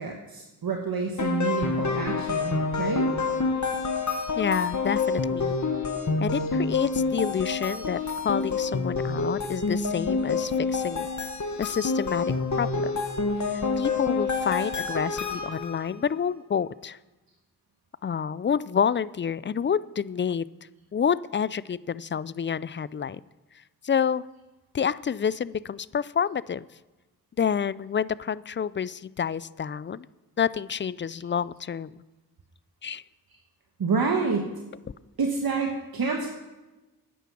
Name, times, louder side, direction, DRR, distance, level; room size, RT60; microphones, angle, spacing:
voice 1, 0.0-3.1 33.8-34.6 35.2-36.3, right 4 dB, 60° right, 2 dB, 1.3 m, -28 dB
sound 1, 1.2-15.9, left 4 dB, 45° left, 1.5 m, -28 dB
voice 2, 4.4-5.6 6.2-11.1 11.6-12.9 13.5-17.0 18.0-20.5 20.9-23.2 23.8-24.3 24.7-26.7 27.4-30.1 30.4-31.9 32.8-33.0 36.1-36.3, left 7 dB, 30° left, 20 dB, 0.4 m, -28 dB
10.0 x 9.2 x 6.0 m, 1.1 s
cardioid pair, 45°, 40 cm